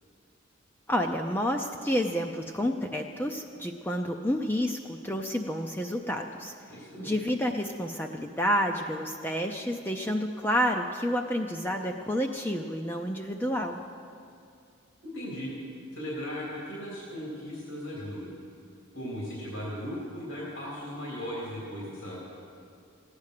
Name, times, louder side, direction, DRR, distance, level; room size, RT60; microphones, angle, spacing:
voice 1, 0.9-6.5 7.0-13.8, equal, 10° left, 3 dB, 0.5 m, -29 dB
voice 2, 6.7-7.1 15.0-15.5 15.9-18.3 18.9-22.2, equal, 80° left, -6 dB, 3.4 m, -37 dB
15.5 x 9.7 x 6.6 m, 2.4 s
head